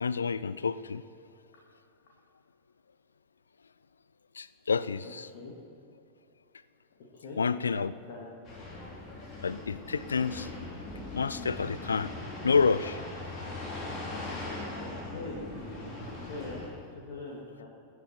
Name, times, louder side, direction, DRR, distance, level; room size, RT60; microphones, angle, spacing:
voice 1, 0.0-1.0 4.4-5.3 7.4-7.9 9.4-10.5 11.1-12.1 12.4-13.0, left 5 dB, 75° left, 17 dB, 0.4 m, -28 dB
voice 2, 7.2-8.3 14.8-15.4 16.3-17.7, left 3 dB, 55° left, -3 dB, 2.4 m, -42 dB
sound 1, 8.4-16.7, left 2 dB, 30° left, 3.7 m, -40 dB
22.5 x 9.2 x 4.6 m, 2.5 s
figure-of-eight pair, 90°, 0 cm